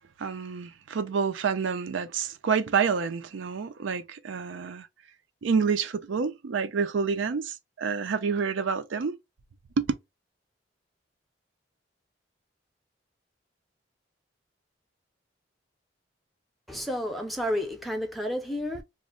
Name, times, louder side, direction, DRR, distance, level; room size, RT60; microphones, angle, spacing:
voice 1, 0.2-4.9 5.4-9.2 9.8-9.9, right 5 dB, 85° right, 0.4 m, -28 dB
voice 2, 16.7-18.8, equal, ahead, 0.5 m, -31 dB
2.5 x 2.1 x 3.6 m
head